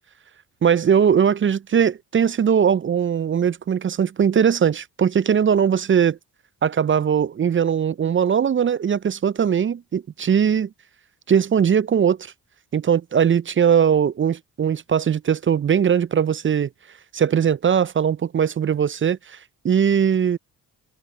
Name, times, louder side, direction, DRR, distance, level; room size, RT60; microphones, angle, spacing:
voice 1, 0.6-6.2 6.6-10.7 11.3-12.3 12.7-16.7 17.1-19.4 19.6-20.4, right 8 dB, 30° right, 0.4 m, -20 dB
hypercardioid pair, 45°, 46 cm